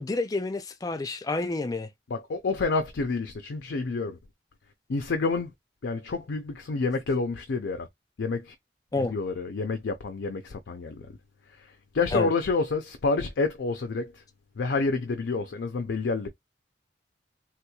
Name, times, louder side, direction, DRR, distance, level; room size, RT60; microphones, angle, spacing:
voice 1, 0.0-1.9 8.9-9.1 12.1-12.3, left 2 dB, 20° left, 0.4 m, -29 dB
voice 2, 2.1-4.2 4.9-5.5 5.8-7.9 8.2-8.6 9.0-11.1 11.5-14.2 14.6-16.3, left 4 dB, 80° left, 0.5 m, -29 dB
3.4 x 3.0 x 2.3 m
head